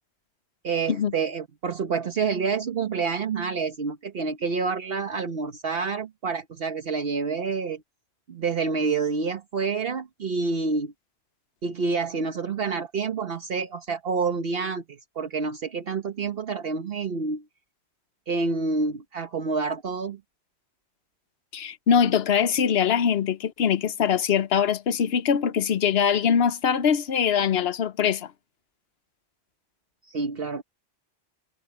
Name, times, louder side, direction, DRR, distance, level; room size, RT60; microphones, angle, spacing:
voice 1, 0.6-7.8 8.3-10.9 11.6-17.4 18.3-20.2 30.0-30.6, right 4 dB, 60° right, 1.3 m, -28 dB
voice 2, 21.5-28.3, left 7 dB, 70° left, 1.0 m, -22 dB
omnidirectional pair, 1.1 m